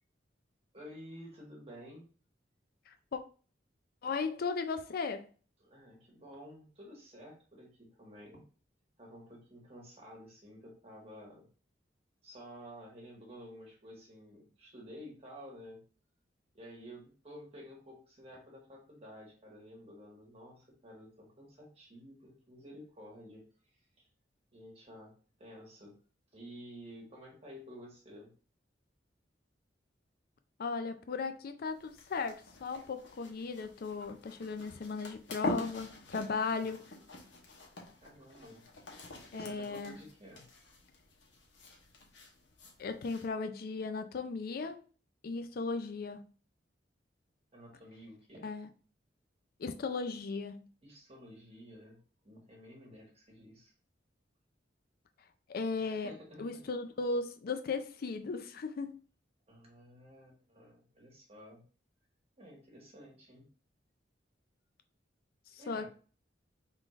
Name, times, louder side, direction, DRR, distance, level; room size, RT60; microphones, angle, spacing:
voice 1, 0.7-2.1 5.6-8.4 9.0-11.5 12.2-15.8 16.5-24.1 24.5-26.0 26.3-28.3 36.2-36.7 38.0-38.7 39.3-40.5 47.5-48.5 50.8-53.7 55.7-56.6 59.5-61.6 62.4-63.5 65.6-65.9, equal, 35° right, 1.6 m, -52 dB
voice 2, 2.9-3.2 4.0-5.3 30.6-36.8 39.3-40.0 42.8-44.8 45.2-46.3 48.4-48.7 49.6-50.7 55.5-56.1 56.4-58.9 65.5-65.9, left 4 dB, 55° left, 0.4 m, -36 dB
sound 1, 31.7-43.3, left 2 dB, 80° left, 1.1 m, -45 dB
4.7 x 3.8 x 2.5 m
head